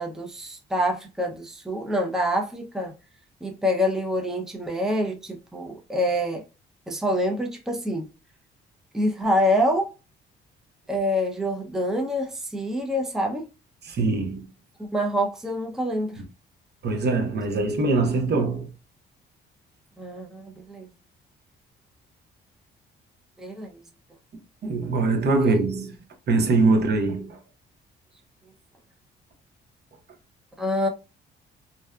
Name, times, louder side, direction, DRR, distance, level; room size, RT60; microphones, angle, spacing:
voice 1, 0.0-2.9 3.4-6.4 6.9-8.1 8.9-9.9 10.9-13.5 14.8-16.2 20.0-20.9 23.4-23.8 25.4-25.6 30.6-30.9, equal, ahead, 0.5 m, -26 dB
voice 2, 13.8-14.4 16.8-18.7 24.6-25.9 26.3-27.4, right 3 dB, 55° right, 0.8 m, -22 dB
2.6 x 2.2 x 2.2 m
cardioid pair, 90°, 20 cm